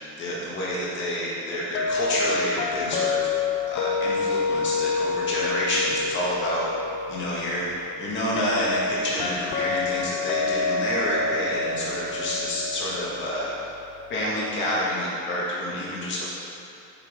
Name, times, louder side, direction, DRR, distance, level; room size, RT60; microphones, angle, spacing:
voice 1, 0.2-3.3 3.7-6.7 7.1-13.5 14.1-16.3, left 1 dB, 40° left, -6 dB, 1.9 m, -28 dB
sound 1, 1.7-14.6, left 4 dB, 75° left, 0.8 m, -28 dB
8.1 x 7.0 x 3.8 m, 2.8 s
cardioid pair, 165°, 31 cm